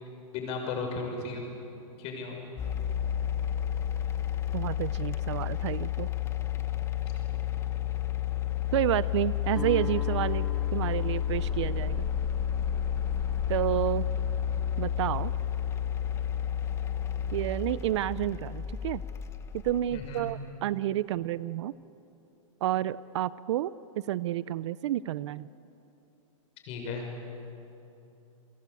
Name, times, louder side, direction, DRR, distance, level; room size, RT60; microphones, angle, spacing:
voice 1, 0.3-1.5 2.0-2.5 19.9-20.3 26.7-27.1, left 4 dB, 35° left, 2 dB, 6.5 m, -35 dB
sound 1, 2.6-20.3, left 10 dB, 15° left, 1.1 m, -31 dB
voice 2, 4.5-6.1 8.7-10.5 10.7-12.1 13.5-14.1 14.8-15.3 17.3-19.0 19.6-21.7 22.6-23.7 24.1-25.5, right 13 dB, 55° right, 18 dB, 0.6 m, -30 dB
Guitar, 9.5-15.5, equal, ahead, 6.8 m, -44 dB
30.0 x 23.5 x 8.5 m, 2.8 s
hypercardioid pair, 155°, 18 cm